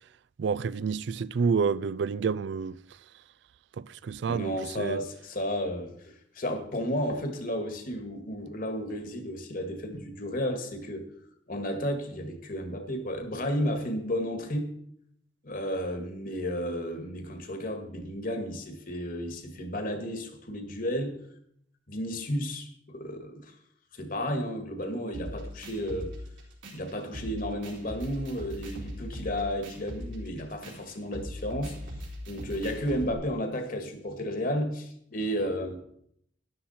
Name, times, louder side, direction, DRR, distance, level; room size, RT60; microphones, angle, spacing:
voice 1, 0.4-2.8 3.8-5.0, right 5 dB, 65° right, 0.4 m, -29 dB
voice 2, 4.3-11.1 11.5-14.7 15.4-21.2 21.9-23.5 23.9-26.1 26.7-31.8 32.3-35.8, equal, 50° left, 1.8 m, -32 dB
sound 1, 25.1-33.1, equal, 85° right, 3.8 m, -41 dB
13.0 x 11.5 x 4.3 m
head